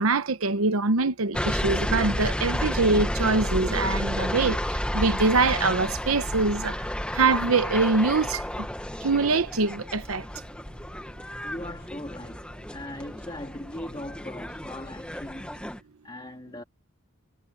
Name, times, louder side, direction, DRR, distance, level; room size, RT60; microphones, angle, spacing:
voice 1, 0.0-4.6 4.9-6.7 7.1-8.7 9.0-10.2, right 3 dB, 75° right, 0.9 m, -24 dB
sound 1, 1.3-15.8, equal, 5° left, 1.1 m, -31 dB
voice 2, 11.4-16.6, left 1 dB, 20° left, 1.9 m, -40 dB
head